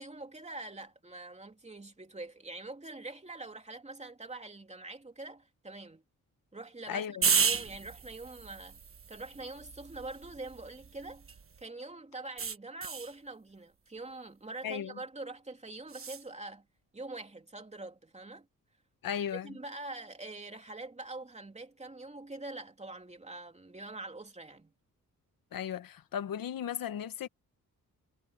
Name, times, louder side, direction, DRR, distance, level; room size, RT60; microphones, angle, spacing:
voice 1, 0.0-6.0 6.5-8.8 9.1-16.7 16.9-18.5 19.3-24.7, right 2 dB, 20° right, 3.0 m, -44 dB
voice 2, 6.9-7.3 14.6-14.9 19.0-19.5 25.5-27.3, left 9 dB, 80° left, 1.2 m, -36 dB
sound 1, 7.2-11.6 12.4-13.2 15.9-16.2, right 6 dB, 40° right, 1.3 m, -33 dB
cardioid pair, 105°, 33 cm